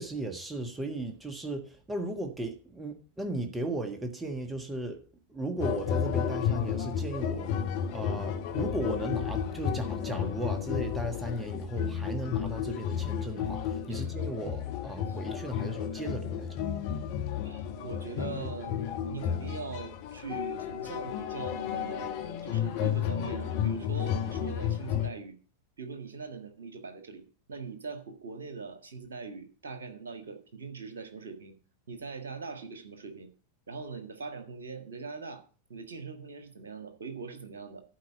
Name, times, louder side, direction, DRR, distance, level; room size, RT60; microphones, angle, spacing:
voice 1, 0.0-5.0 5.3-7.5 7.9-16.6, right 1 dB, 10° right, 1.5 m, -36 dB
sound 1, 5.6-25.1, left 8 dB, 45° left, 1.1 m, -32 dB
voice 2, 17.4-22.2 22.4-25.4 25.8-27.2 27.5-31.5 31.9-33.3 33.7-37.8, right 4 dB, 70° right, 1.6 m, -41 dB
11.5 x 4.7 x 7.5 m
figure-of-eight pair, 90°, 0 cm